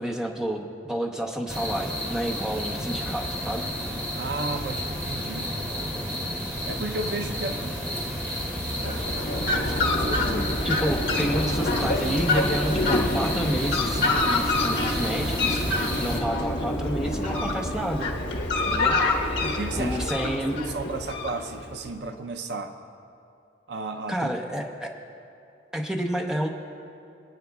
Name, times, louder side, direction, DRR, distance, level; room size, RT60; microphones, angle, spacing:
voice 1, 0.0-3.6 9.7-9.8 10.6-15.6 16.0-18.1 18.7-19.0 19.8-20.6 24.1-24.9 25.7-26.5, equal, 5° right, 1 dB, 0.8 m, -29 dB
sound 1, 1.5-16.2, equal, 20° right, 1.7 m, -31 dB
voice 2, 4.2-5.5 6.7-7.8 8.6-10.6 19.5-22.7 23.7-24.3, right 2 dB, 65° right, 7 dB, 0.6 m, -34 dB
Fowl, 8.8-21.8, left 2 dB, 70° left, 1.4 m, -26 dB
27.0 x 9.3 x 2.3 m, 2.6 s
head